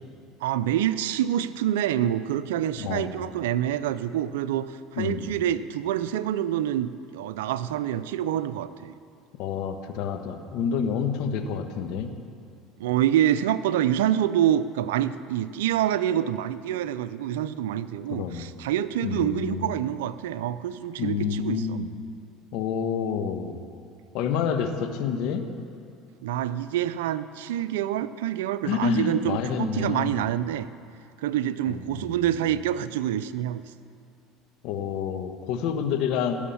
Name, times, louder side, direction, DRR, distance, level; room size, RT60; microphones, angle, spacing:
voice 1, 0.4-8.9 12.8-21.8 26.2-30.7 31.2-33.6, right 11 dB, 85° right, 14 dB, 0.5 m, -26 dB
voice 2, 2.8-3.1 5.0-5.3 9.4-12.1 18.1-18.4 19.0-19.7 21.0-21.9 22.5-23.6 24.1-25.4 28.6-30.2 31.7-32.2 34.6-36.4, left 7 dB, 65° left, 6 dB, 1.3 m, -28 dB
17.0 x 7.1 x 7.1 m, 2.5 s
supercardioid pair, 85°, 0 cm